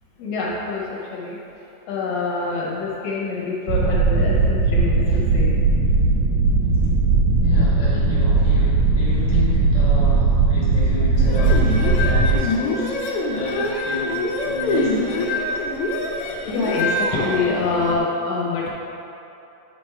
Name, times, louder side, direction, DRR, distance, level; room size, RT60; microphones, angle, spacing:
voice 1, 0.2-1.4 1.9-5.6 16.5-18.7, left 3 dB, 70° left, -4 dB, 1.8 m, -26 dB
sound 1, 3.7-12.4, right 3 dB, 75° right, 1.8 m, -18 dB
voice 2, 7.4-15.4, left 3 dB, 35° left, -9 dB, 0.6 m, -31 dB
sound 2, 11.2-18.0, left 2 dB, 85° left, 1.2 m, -25 dB
8.2 x 3.4 x 4.4 m, 2.9 s
omnidirectional pair, 3.3 m